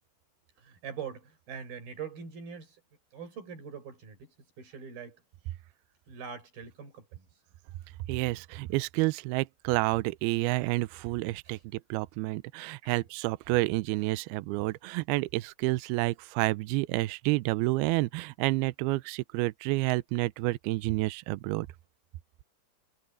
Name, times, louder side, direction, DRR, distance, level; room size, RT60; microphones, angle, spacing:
voice 1, 0.6-2.8 3.1-5.2 6.1-7.3 11.4-11.6 12.8-13.0, right 6 dB, 60° right, 6.8 m, -43 dB
voice 2, 8.1-21.7, right 20 dB, 80° right, 2.4 m, -29 dB
omnidirectional pair, 4.9 m